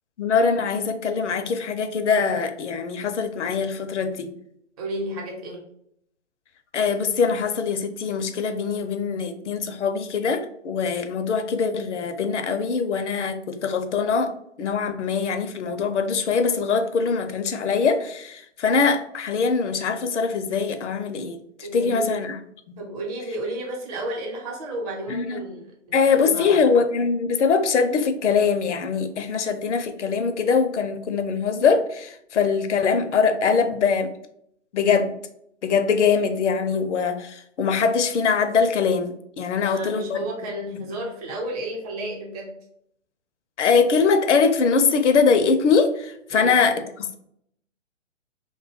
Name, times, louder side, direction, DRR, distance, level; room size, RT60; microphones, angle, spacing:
voice 1, 0.2-4.3 6.7-14.3 14.6-22.4 22.7-22.8 25.1-25.4 25.9-34.1 34.7-35.1 35.6-40.3 40.6-40.8 43.6-47.2, left 5 dB, 70° left, 8 dB, 0.5 m, -22 dB
voice 2, 4.8-5.6 21.6-22.3 22.8-26.6 39.6-42.5 46.3-46.5, right 1 dB, 30° right, -1 dB, 0.8 m, -32 dB
2.6 x 2.2 x 2.9 m, 0.72 s
figure-of-eight pair, 125°, 37 cm